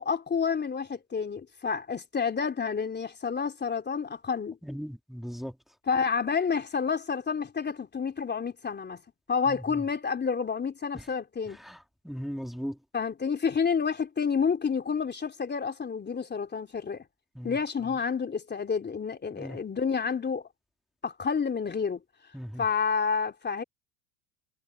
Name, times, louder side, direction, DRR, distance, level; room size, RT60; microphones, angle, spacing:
voice 1, 0.0-4.6 5.8-9.0 9.3-11.6 12.9-17.0 17.4-20.5 21.0-22.0 22.6-23.6, left 6 dB, 25° left, 3.3 m, -29 dB
voice 2, 4.6-5.6 9.5-9.8 11.6-11.8 12.0-12.8 17.4-17.6 19.4-19.6 22.3-22.6, equal, ahead, 3.6 m, -37 dB
supercardioid pair, 95°, 42 cm